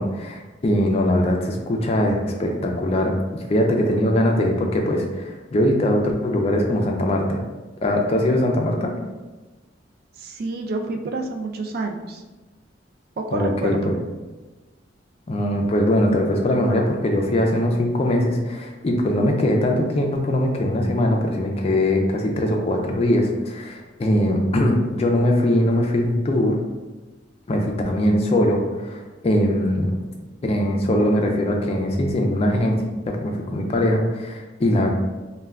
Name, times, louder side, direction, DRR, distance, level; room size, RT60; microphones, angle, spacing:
voice 1, 0.0-7.4 7.8-8.9 13.3-14.0 15.3-26.6 27.5-29.9 30.4-34.9, left 1 dB, 35° left, 2 dB, 0.4 m, -21 dB
voice 2, 10.2-12.2 13.2-13.9, right 3 dB, 50° right, 4 dB, 0.3 m, -28 dB
2.2 x 2.2 x 3.5 m, 1.2 s
head